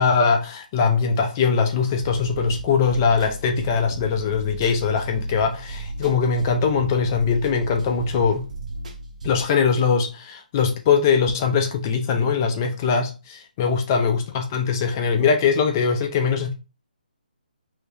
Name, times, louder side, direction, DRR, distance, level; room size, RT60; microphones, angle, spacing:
voice 1, 0.0-8.5 9.2-16.5, left 5 dB, 20° left, 0.4 m, -21 dB
sound 1, 2.0-9.4, right 2 dB, 50° right, 0.8 m, -34 dB
3.2 x 2.7 x 3.4 m
hypercardioid pair, 165°, 5 cm